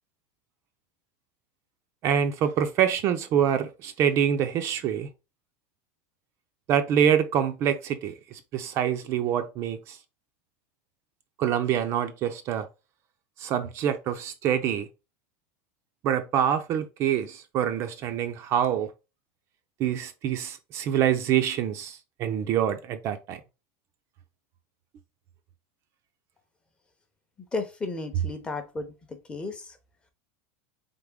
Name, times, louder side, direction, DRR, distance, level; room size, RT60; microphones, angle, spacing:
voice 1, 2.0-5.1 6.7-10.0 11.4-12.7 13.4-14.9 16.0-18.9 19.8-23.4, right 9 dB, 35° right, 0.4 m, -26 dB
voice 2, 27.5-28.9 29.3-29.6, left 3 dB, 10° left, 0.6 m, -33 dB
3.7 x 3.5 x 3.5 m
supercardioid pair, 155°, 8 cm